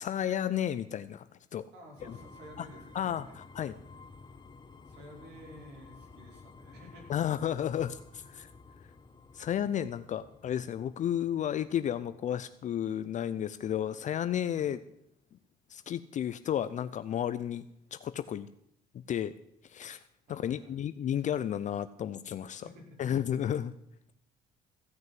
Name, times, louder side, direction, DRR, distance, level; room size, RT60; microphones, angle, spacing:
voice 1, 0.0-1.6 2.6-2.7 2.9-3.7 7.1-8.5 9.3-14.8 15.7-17.7 17.9-18.5 18.9-19.3 19.6-20.0 20.3-22.7 23.0-23.7, left 10 dB, 45° left, 13 dB, 0.5 m, -32 dB
voice 2, 1.7-3.4 4.8-7.1 14.5-14.8 20.3-20.7 22.6-23.0, equal, 80° right, -1 dB, 5.1 m, -52 dB
sound 1, 2.0-13.8, left 4 dB, 25° left, 1.1 m, -54 dB
15.5 x 6.2 x 7.5 m, 0.75 s
cardioid pair, 110°, 17 cm